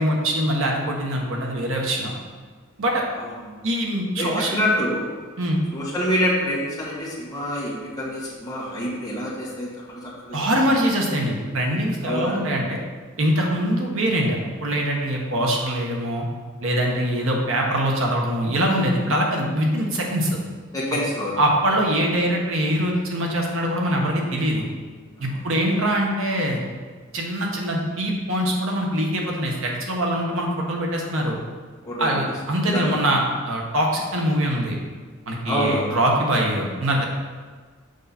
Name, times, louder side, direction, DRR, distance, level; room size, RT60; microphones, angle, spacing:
voice 1, 0.0-2.1 2.8-3.0 3.6-4.6 5.4-5.6 10.3-12.8 13.2-16.3 16.6-20.4 21.4-24.7 25.2-26.6 27.1-31.4 32.0-34.8 35.3-37.0, right 1 dB, 70° right, 0 dB, 1.2 m, -23 dB
voice 2, 3.1-3.6 4.1-5.1 5.7-10.4 12.0-12.4 20.7-21.3 25.2-25.5 31.8-32.2 32.6-33.0 35.5-35.9, equal, 20° left, -6 dB, 1.7 m, -26 dB
6.5 x 4.8 x 4.2 m, 1.5 s
head